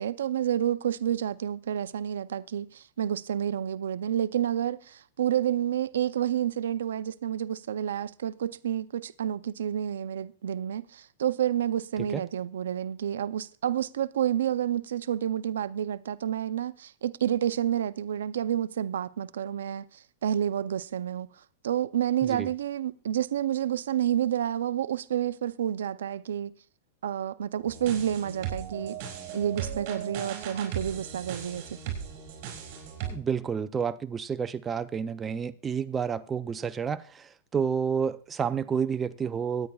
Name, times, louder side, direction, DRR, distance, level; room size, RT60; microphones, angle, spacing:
voice 1, 0.0-21.3 21.6-26.5 27.0-29.0 29.3-31.8, right 10 dB, 90° right, 0.5 m, -29 dB
sound 1, 27.6-33.1, right 9 dB, 45° right, 5.5 m, -37 dB
voice 2, 33.1-39.7, right 7 dB, 15° right, 0.5 m, -30 dB
23.0 x 9.8 x 2.3 m
supercardioid pair, 145°, 0 cm